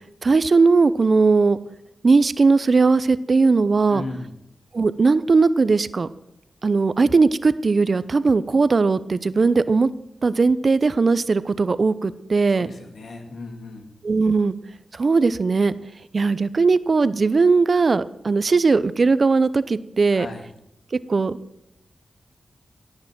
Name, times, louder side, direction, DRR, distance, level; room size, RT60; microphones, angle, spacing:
voice 1, 0.2-1.6 2.0-4.0 4.7-6.1 6.6-9.9 10.2-12.7 14.0-14.5 14.9-15.7 16.1-20.3 21.1-21.4, right 4 dB, 55° right, 16 dB, 0.7 m, -18 dB
voice 2, 3.9-4.3 12.5-13.9 20.1-20.4, left 3 dB, 75° left, 4 dB, 2.2 m, -35 dB
17.5 x 6.7 x 7.5 m, 0.82 s
cardioid pair, 50°, 0 cm